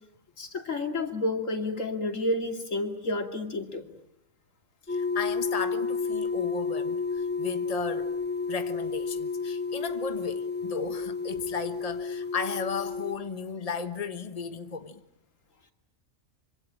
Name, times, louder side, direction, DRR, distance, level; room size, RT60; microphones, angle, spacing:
voice 1, 0.4-3.8, left 2 dB, 85° left, 2.9 m, -30 dB
voice 2, 4.9-8.1 8.5-15.0, left 5 dB, 30° left, 1.4 m, -35 dB
sound 1, 4.9-13.2, left 4 dB, 10° left, 1.2 m, -31 dB
25.5 x 25.0 x 8.7 m
omnidirectional pair, 1.3 m